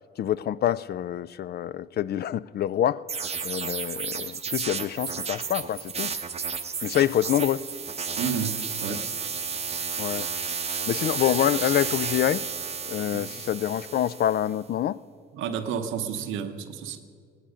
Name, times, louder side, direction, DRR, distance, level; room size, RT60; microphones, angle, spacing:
voice 1, 0.2-6.1 6.8-7.7 8.9-9.0 10.0-10.3 10.7-12.4 12.9-15.0, left 11 dB, 55° left, 0.4 m, -26 dB
sound 1, 3.1-14.5, right 5 dB, 30° right, 0.7 m, -32 dB
voice 2, 8.2-9.0 13.1-13.3 15.3-17.0, right 7 dB, 85° right, 0.9 m, -31 dB
18.5 x 10.0 x 5.1 m
cardioid pair, 90°, 20 cm